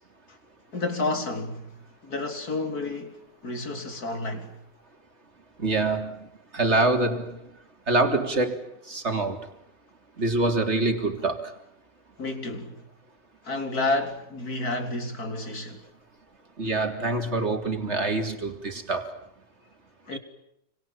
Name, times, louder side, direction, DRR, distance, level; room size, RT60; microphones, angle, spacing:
voice 1, 0.7-1.8 2.0-4.6 12.2-12.8 13.4-15.9 20.1-20.2, left 2 dB, 55° left, 4.3 m, -30 dB
voice 2, 5.6-6.2 6.5-7.4 7.9-8.6 8.9-9.5 10.2-11.5 16.6-19.1 20.1-20.2, right 2 dB, 35° right, 3.7 m, -25 dB
29.5 x 26.0 x 7.4 m
omnidirectional pair, 2.0 m